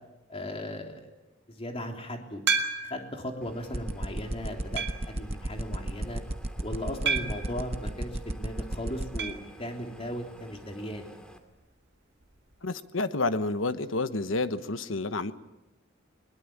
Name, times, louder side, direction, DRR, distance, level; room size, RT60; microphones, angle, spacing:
voice 1, 0.3-1.1 1.5-2.4 2.8-6.2 6.6-11.1, left 1 dB, 30° left, 3 dB, 3.3 m, -37 dB
sound 1, 2.5-3.2 3.8-3.9 4.8-5.2 7.1-7.5 9.2-9.5 9.7-9.8 10.1-10.2 12.2-12.3, right 5 dB, 60° right, 1.9 m, -30 dB
sound 2, 3.4-11.4, equal, 5° left, 2.4 m, -51 dB
sound 3, 3.7-9.3, right 1 dB, 30° right, 1.0 m, -32 dB
voice 2, 12.6-15.3, left 3 dB, 80° left, 12 dB, 1.2 m, -29 dB
21.5 x 21.0 x 8.8 m, 1.0 s
head